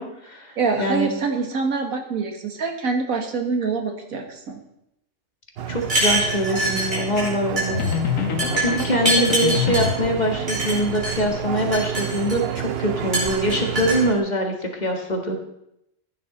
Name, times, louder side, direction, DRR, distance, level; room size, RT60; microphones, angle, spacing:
voice 1, 0.0-1.1 5.7-7.8 8.6-15.3, equal, 30° left, 2 dB, 1.8 m, -24 dB
voice 2, 0.6-4.6, right 4 dB, 90° right, 4 dB, 2.0 m, -25 dB
sound 1, 5.6-14.2, right 10 dB, 55° right, 0.8 m, -30 dB
sound 2, 5.8-7.3 7.6-7.9 8.4-9.9 10.5-11.2 11.6-12.6 13.1-14.0, right 1 dB, 35° right, 5.2 m, -24 dB
sound 3, 7.7-10.1, left 9 dB, 75° left, 1.3 m, -25 dB
15.0 x 9.6 x 4.2 m, 0.82 s
omnidirectional pair, 1.4 m